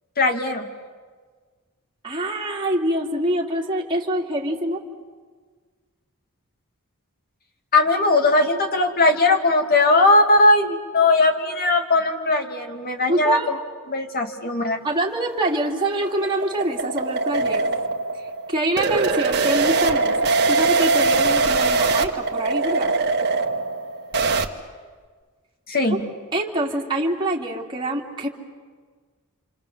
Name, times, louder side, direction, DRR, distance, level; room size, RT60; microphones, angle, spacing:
voice 1, 0.2-0.7 7.7-13.4 13.9-14.8 25.7-26.0, left 2 dB, 45° left, 4 dB, 2.4 m, -19 dB
voice 2, 2.0-4.8 13.1-13.5 14.8-17.7 18.5-20.2 20.5-22.9 25.9-26.0 26.3-28.3, right 1 dB, 20° right, -2 dB, 2.6 m, -25 dB
sound 1, 15.5-24.5, right 3 dB, 50° right, 1.5 m, -22 dB
27.0 x 27.0 x 7.3 m, 1.5 s
head